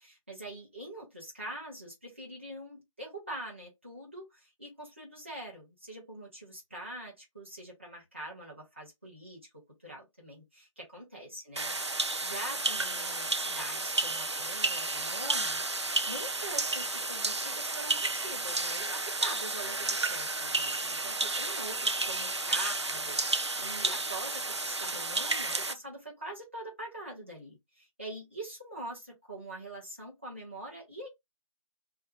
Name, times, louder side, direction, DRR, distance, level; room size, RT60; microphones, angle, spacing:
voice 1, 0.0-11.7 12.2-31.1, right 1 dB, 20° right, 1.1 m, -44 dB
sound 1, 11.6-25.7, right 3 dB, 55° right, 0.4 m, -32 dB
2.7 x 2.3 x 3.3 m
figure-of-eight pair, 175°, 18 cm